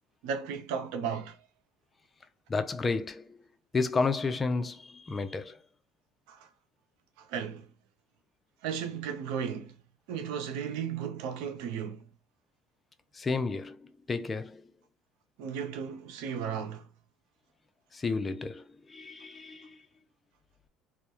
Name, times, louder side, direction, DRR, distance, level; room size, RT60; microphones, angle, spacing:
voice 1, 0.2-1.3 6.3-6.4 7.3-7.7 8.6-9.8 10.1-12.0 15.4-16.9, right 7 dB, 75° right, 0.5 m, -35 dB
voice 2, 2.5-3.4 3.7-5.6 13.1-14.6 17.9-19.8, left 4 dB, 25° left, 0.4 m, -32 dB
2.2 x 2.0 x 2.8 m
supercardioid pair, 90°, 0 cm